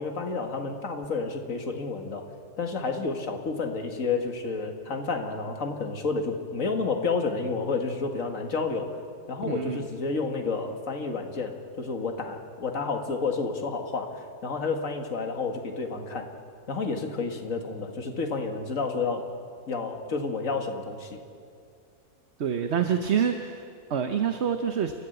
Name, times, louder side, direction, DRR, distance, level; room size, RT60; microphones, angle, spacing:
voice 1, 0.0-2.2 2.6-8.9 9.3-16.3 16.7-19.2 19.7-21.2, left 4 dB, 55° left, 4 dB, 2.2 m, -30 dB
voice 2, 9.4-9.8 22.4-23.6 23.9-24.9, right 7 dB, 50° right, 7 dB, 1.0 m, -26 dB
29.0 x 13.5 x 8.0 m, 2.4 s
omnidirectional pair, 1.7 m